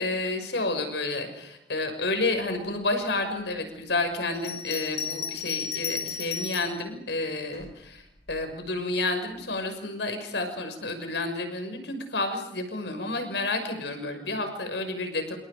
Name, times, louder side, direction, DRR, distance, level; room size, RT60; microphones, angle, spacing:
voice 1, 0.0-8.0 8.3-15.4, left 2 dB, 75° left, 7 dB, 6.1 m, -30 dB
Bell, 4.3-6.8 7.5-8.4, left 7 dB, 35° left, 4.5 m, -34 dB
28.5 x 27.0 x 5.2 m, 0.79 s
head